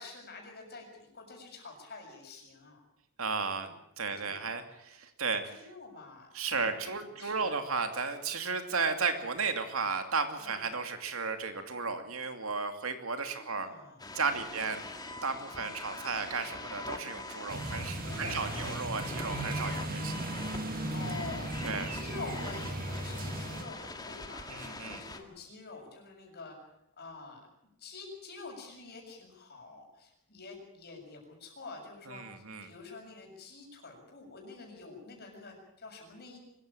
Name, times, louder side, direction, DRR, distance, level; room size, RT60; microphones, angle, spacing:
voice 1, 0.0-2.8 3.5-3.7 4.2-4.6 5.4-6.9 7.2-7.6 10.4-10.7 13.3-14.0 14.4-14.7 15.4-15.7 18.0-18.5 20.9-26.6 27.0-27.5 27.8-36.4, left 3 dB, 50° left, 1 dB, 7.1 m, -47 dB
voice 2, 3.2-3.7 4.0-5.7 6.3-13.7 14.1-14.8 15.2-20.3 21.6-21.9 24.5-25.0 32.1-32.7, right 4 dB, 75° right, 7 dB, 2.6 m, -34 dB
sound 1, 14.0-25.2, left 3 dB, 20° left, 2.0 m, -43 dB
sound 2, 17.5-23.6, right 2 dB, 45° right, 2.1 m, -37 dB
24.0 x 14.5 x 8.8 m, 0.83 s
head